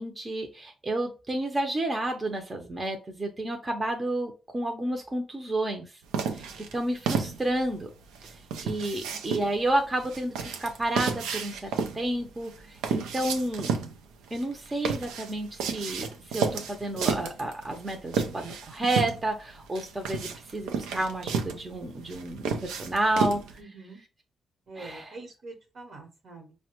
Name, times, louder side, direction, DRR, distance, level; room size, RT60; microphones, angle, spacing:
voice 1, 0.0-6.0 6.3-7.9 8.2-8.3 8.6-13.8 14.3-23.4 24.8-25.2, right 1 dB, 35° right, 4 dB, 0.7 m, -31 dB
sound 1, 6.1-23.6, right 6 dB, 85° right, 0.4 m, -32 dB
voice 2, 6.3-6.7 23.6-24.0 24.7-26.5, right 3 dB, 65° right, 3 dB, 1.1 m, -45 dB
4.6 x 2.2 x 2.9 m, 0.32 s
hypercardioid pair, 40°, 0 cm